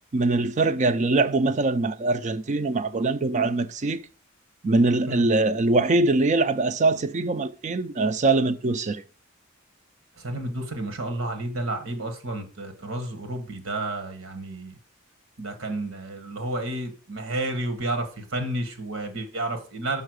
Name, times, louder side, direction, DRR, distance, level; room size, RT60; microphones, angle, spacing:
voice 1, 0.1-4.0 4.6-9.0, right 3 dB, 35° right, 0.5 m, -23 dB
voice 2, 10.2-14.8 15.4-20.0, right 2 dB, 80° right, 1.6 m, -31 dB
5.7 x 5.7 x 6.3 m
head